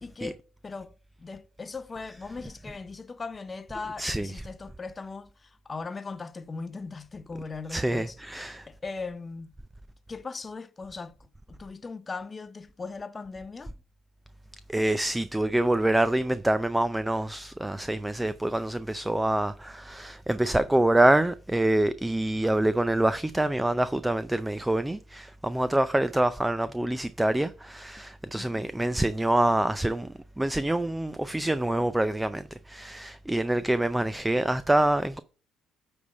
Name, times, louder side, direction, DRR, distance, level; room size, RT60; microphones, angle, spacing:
voice 1, 0.0-0.9 1.2-9.5 10.1-13.7 28.3-28.7, left 4 dB, 30° left, 0.6 m, -39 dB
voice 2, 4.0-4.4 7.7-8.7 14.7-35.2, right 1 dB, 10° right, 0.4 m, -26 dB
9.4 x 3.4 x 5.3 m
hypercardioid pair, 60°, 0 cm